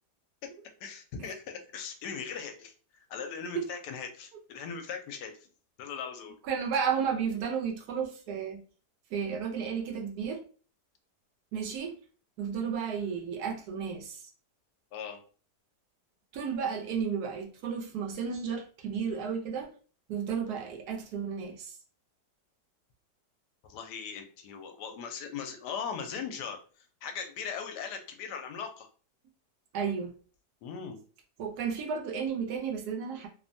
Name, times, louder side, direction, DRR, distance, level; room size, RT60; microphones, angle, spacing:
voice 1, 0.8-5.3 5.8-6.4 14.9-15.2 23.6-28.9 30.6-31.0, left 6 dB, 80° left, 1.1 m, -39 dB
voice 2, 6.5-8.6 9.1-10.4 11.5-12.0 12.4-14.2 16.3-19.7 20.1-21.8 29.7-30.1 31.4-33.3, right 6 dB, 75° right, 1.1 m, -33 dB
3.0 x 2.1 x 2.6 m
omnidirectional pair, 1.8 m